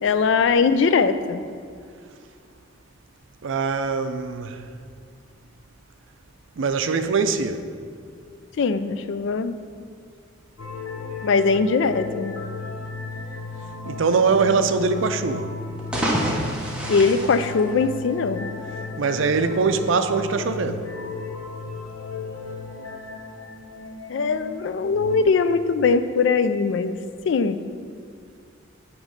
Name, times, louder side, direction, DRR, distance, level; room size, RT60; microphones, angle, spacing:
voice 1, 0.0-1.4 8.6-9.6 11.2-12.4 16.9-18.5 24.1-27.0 27.3-27.6, left 4 dB, 60° left, 0.3 m, -21 dB
voice 2, 3.4-4.6 6.6-7.6 13.9-15.5 19.0-20.9, right 4 dB, 70° right, 0.4 m, -22 dB
sound 1, 10.6-25.2, left 4 dB, 85° left, 0.8 m, -35 dB
sound 2, 15.7-18.3, equal, 5° right, 0.8 m, -27 dB
8.9 x 3.1 x 6.5 m
head